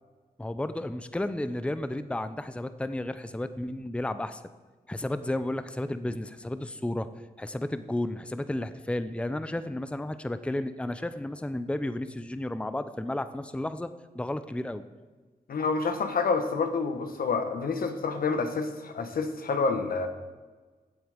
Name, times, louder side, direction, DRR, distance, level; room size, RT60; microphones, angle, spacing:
voice 1, 0.4-4.4 4.9-7.1 7.4-13.9 14.1-14.8, left 1 dB, 5° left, 11 dB, 0.7 m, -32 dB
voice 2, 15.5-20.1, left 4 dB, 75° left, 7 dB, 1.3 m, -28 dB
15.5 x 7.8 x 5.2 m, 1.3 s
cardioid pair, 70°, 15 cm